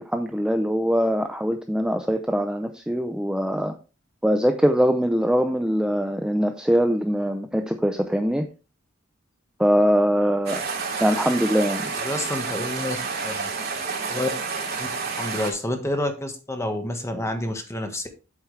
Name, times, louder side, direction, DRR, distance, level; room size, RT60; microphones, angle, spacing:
voice 1, 0.0-3.7 4.2-8.5 9.6-10.6 11.0-11.9, equal, 5° right, 6 dB, 0.6 m, -22 dB
sound 1, 10.5-15.5, right 4 dB, 55° right, 2.6 m, -29 dB
voice 2, 12.0-13.0 13.2-13.5 14.1-14.3 14.8-14.9 15.2-18.1, left 1 dB, 15° left, 6 dB, 1.4 m, -28 dB
8.2 x 8.2 x 3.3 m, 0.32 s
head